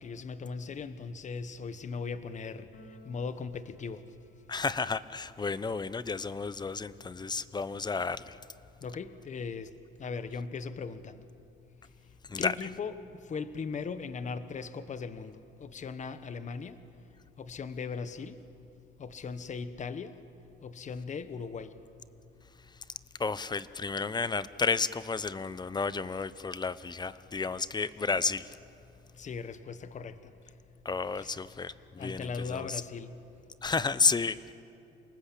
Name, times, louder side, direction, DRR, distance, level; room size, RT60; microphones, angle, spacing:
voice 1, 0.0-2.7 3.0-4.0 8.8-9.7 10.0-11.2 12.4-13.0 13.3-16.8 17.4-18.4 19.0-20.1 20.6-21.7 29.2-30.3 31.1-31.3 32.0-33.1, left 5 dB, 35° left, 11 dB, 1.3 m, -38 dB
Keyboard (musical), 2.7-4.8, left 2 dB, 55° left, 3.4 m, -57 dB
voice 2, 4.5-8.4 12.3-12.5 23.2-28.6 30.8-32.7 33.6-34.5, left 4 dB, 20° left, 16 dB, 0.9 m, -32 dB
29.0 x 19.5 x 8.5 m, 2.8 s
cardioid pair, 105°, 20 cm